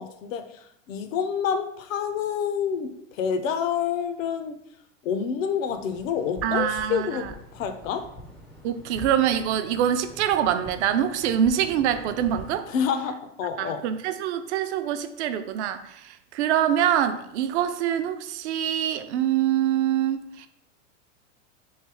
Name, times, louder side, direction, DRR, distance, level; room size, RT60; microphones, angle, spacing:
voice 1, 0.0-4.6 5.0-8.1 12.7-13.8, left 7 dB, 80° left, 8 dB, 0.6 m, -28 dB
sound 1, 5.7-12.6, left 1 dB, 5° left, 0.3 m, -44 dB
voice 2, 6.4-7.3 8.6-12.7 13.6-20.5, right 10 dB, 60° right, 9 dB, 0.5 m, -25 dB
3.3 x 2.8 x 4.6 m, 0.78 s
supercardioid pair, 130°, 39 cm